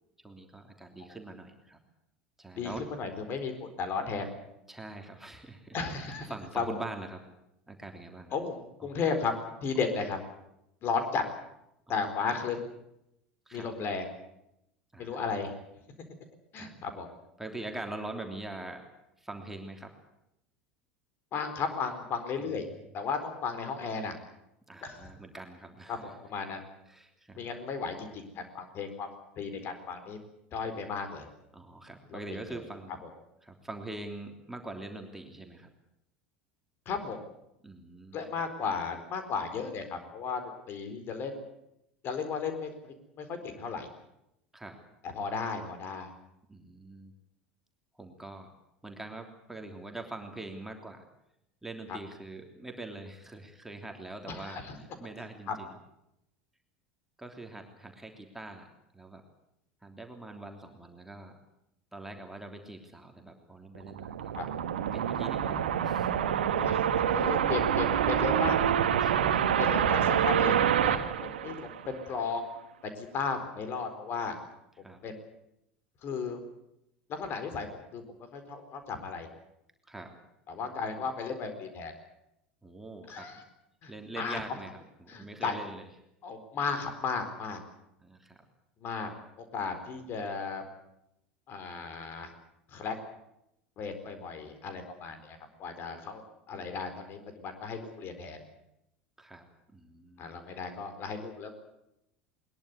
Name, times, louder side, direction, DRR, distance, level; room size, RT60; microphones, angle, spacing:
voice 1, 0.2-1.8 2.4-2.9 4.7-7.2 7.7-8.4 8.8-9.0 11.9-12.0 13.5-13.7 14.9-15.5 16.5-16.8 17.4-18.9 19.2-19.9 22.4-22.5 22.8-22.9 24.7-26.2 26.9-27.5 31.5-33.0 33.4-35.7 37.6-38.4 44.5-44.8 46.5-47.1 47.9-48.5 48.8-51.0 51.6-55.8 57.2-58.7 58.9-59.2 59.8-61.3 61.9-64.3 64.9-67.3 69.0-69.6 74.8-75.0 79.9-80.2 80.7-80.8 82.6-83.4 83.9-85.9 88.0-88.4 99.2-99.5 99.7-100.4, right 2 dB, 5° right, 3 dB, 3.2 m, -44 dB
voice 2, 2.6-4.3 5.7-6.3 6.5-6.8 8.3-9.3 9.6-10.2 10.8-11.2 11.9-12.7 13.5-14.1 15.0-15.5 16.5-17.1 21.3-22.6 22.9-24.1 24.8-25.1 25.9-26.6 27.3-29.1 29.4-30.2 30.5-31.3 32.1-32.2 32.5-32.6 36.9-37.2 38.1-41.3 42.0-43.9 45.1-46.1 51.9-52.0 54.3-54.8 55.5-55.6 64.4-64.5 66.5-68.6 69.6-72.4 72.8-74.4 74.8-75.2 76.0-76.4 77.1-78.0 78.3-79.3 80.5-81.9 83.1-83.4 83.8-84.4 85.1-85.6 86.2-87.6 88.8-89.1 89.4-90.6 91.5-92.3 92.7-92.9 93.8-96.2 96.5-98.4 100.2-101.5, left 5 dB, 40° left, 8 dB, 4.3 m, -35 dB
sound 1, 63.8-72.1, right 9 dB, 65° right, 1.5 m, -27 dB
21.5 x 21.5 x 8.2 m, 0.83 s
figure-of-eight pair, 75°, 6 cm